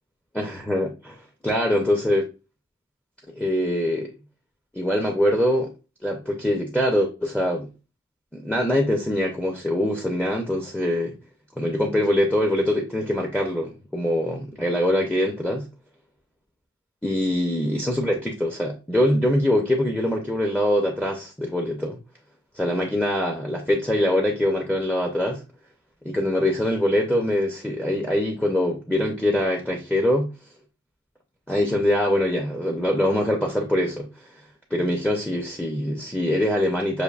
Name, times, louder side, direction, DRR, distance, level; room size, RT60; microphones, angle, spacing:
voice 1, 0.3-2.3 3.3-4.1 4.7-5.7 6.0-7.7 8.3-11.1 11.6-15.7 17.0-22.0 22.6-25.4 26.0-30.3 31.5-34.3 34.7-37.0, left 1 dB, 5° left, 0.5 m, -23 dB
6.5 x 2.6 x 2.3 m
head